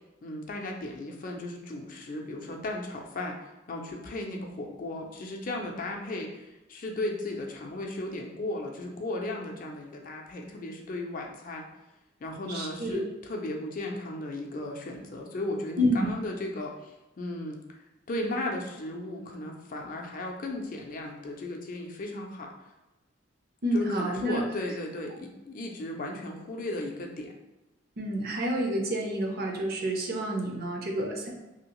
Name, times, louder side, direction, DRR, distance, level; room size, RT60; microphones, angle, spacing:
voice 1, 0.2-3.4 3.7-11.7 12.2-17.6 18.1-22.5 23.7-27.3, left 1 dB, 45° left, 1 dB, 0.4 m, -35 dB
voice 2, 12.5-13.0 15.8-16.1 23.6-24.4 28.0-31.3, equal, 50° right, 1 dB, 0.6 m, -29 dB
2.8 x 2.7 x 3.0 m, 1.0 s
head